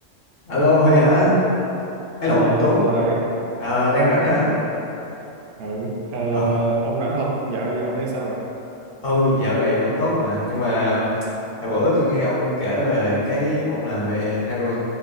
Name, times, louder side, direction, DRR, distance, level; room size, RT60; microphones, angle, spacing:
voice 1, 0.5-1.3 2.2-2.8 3.6-4.5 6.3-6.4 9.0-11.0 11.6-14.8, left 1 dB, 55° left, -9 dB, 1.1 m, -20 dB
voice 2, 2.3-3.4 4.3-4.6 5.6-8.5, right 2 dB, 65° right, -2 dB, 0.7 m, -25 dB
5.3 x 2.3 x 2.4 m, 2.9 s
omnidirectional pair, 1.3 m